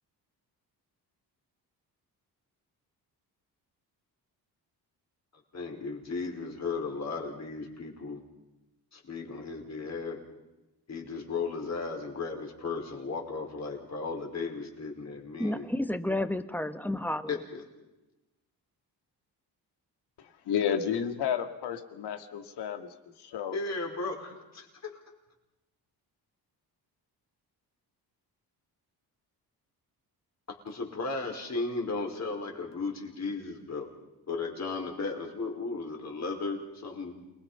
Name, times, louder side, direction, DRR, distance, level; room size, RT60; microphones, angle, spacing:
voice 1, 5.5-8.2 8.9-10.2 10.9-15.7 17.3-17.6 23.5-25.0 30.5-33.9 34.3-37.3, left 4 dB, 40° left, 5.2 m, -35 dB
voice 2, 15.4-17.4, left 1 dB, 5° left, 1.3 m, -31 dB
voice 3, 20.2-23.6, left 8 dB, 80° left, 2.2 m, -32 dB
28.5 x 21.0 x 5.7 m
cardioid pair, 95°, 39 cm